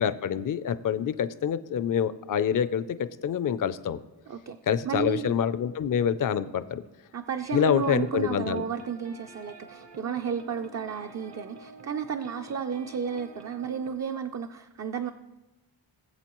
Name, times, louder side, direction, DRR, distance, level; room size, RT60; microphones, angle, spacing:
voice 1, 0.0-4.0 4.7-6.8 7.5-8.6, left 8 dB, 45° left, 13 dB, 0.5 m, -26 dB
voice 2, 4.3-4.6 4.8-5.4 7.1-15.1, right 7 dB, 40° right, 5 dB, 0.4 m, -33 dB
sound 1, 7.4-14.0, right 1 dB, 65° right, 1.1 m, -48 dB
19.5 x 7.7 x 3.0 m, 1.1 s
wide cardioid pair, 130°, 45 cm